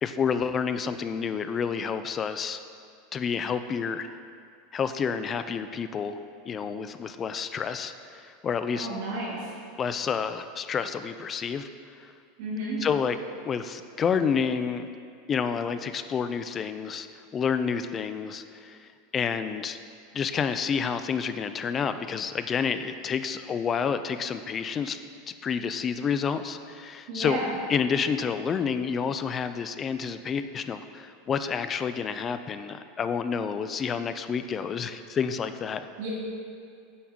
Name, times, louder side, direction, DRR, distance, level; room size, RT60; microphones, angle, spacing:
voice 1, 0.0-2.6 3.1-4.2 4.7-6.2 6.5-8.9 9.8-11.7 12.0-12.1 12.8-13.2 13.4-14.9 15.3-17.1 17.3-19.8 20.1-25.0 25.3-27.4 27.7-35.9, left 6 dB, 20° left, 10 dB, 0.3 m, -29 dB
voice 2, 8.7-9.4 12.4-12.8 27.1-27.5 36.0-36.1, right 2 dB, 60° right, -7 dB, 2.1 m, -32 dB
9.5 x 7.1 x 3.6 m, 2.3 s
supercardioid pair, 170°, 0 cm